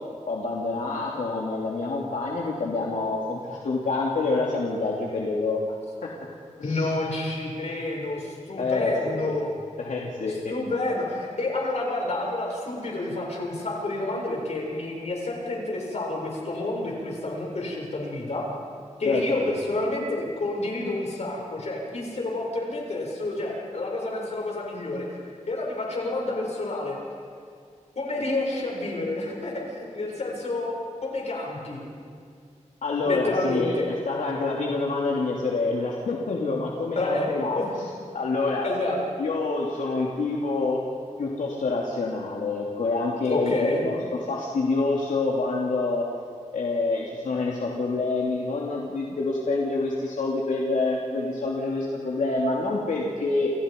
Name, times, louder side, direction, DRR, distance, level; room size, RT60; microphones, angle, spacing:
voice 1, 0.2-5.6 6.0-6.1 6.6-6.9 8.6-9.3 9.8-10.5 19.0-19.4 32.8-37.6 38.1-38.6 39.2-40.8 41.2-43.5 43.8-44.0 44.3-46.0 46.5-53.5, left 3 dB, 85° left, -2 dB, 2.9 m, -27 dB
voice 2, 6.6-9.5 10.3-18.4 19.0-25.2 25.5-27.0 28.0-31.8 33.0-33.9 37.0-37.3 37.6-37.7 38.6-39.0 43.3-43.9, left 2 dB, 60° left, -1 dB, 7.1 m, -29 dB
29.5 x 29.0 x 5.4 m, 2.2 s
wide cardioid pair, 120°, 13 cm